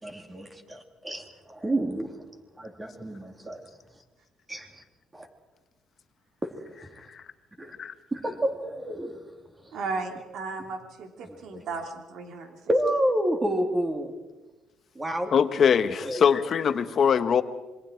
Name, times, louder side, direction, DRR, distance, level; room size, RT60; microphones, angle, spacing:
voice 1, 0.0-1.2 1.5-2.1 2.6-3.6 4.5-4.7 5.1-5.3 7.6-7.7 8.1-9.2 12.7-14.1 14.9-15.3 16.0-16.2, right 1 dB, 15° right, 4 dB, 3.2 m, -28 dB
voice 2, 9.7-12.6, right 4 dB, 70° right, 4 dB, 3.4 m, -35 dB
voice 3, 15.3-17.4, left 7 dB, 50° left, 11 dB, 1.2 m, -22 dB
27.0 x 23.0 x 4.6 m, 1.1 s
cardioid pair, 100°, 0 cm